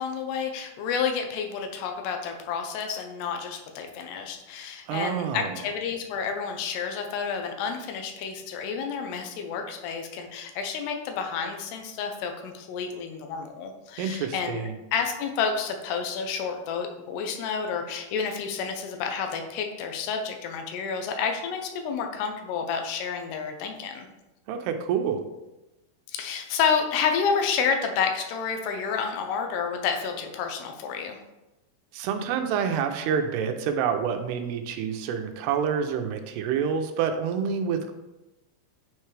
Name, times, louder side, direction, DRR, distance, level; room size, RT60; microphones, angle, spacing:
voice 1, 0.0-24.1 26.1-31.2, left 6 dB, 85° left, 4 dB, 2.8 m, -30 dB
voice 2, 4.9-5.6 14.0-14.7 24.5-25.2 31.9-37.9, right 7 dB, 85° right, 7 dB, 2.7 m, -27 dB
8.8 x 4.6 x 3.2 m, 0.99 s
omnidirectional pair, 4.7 m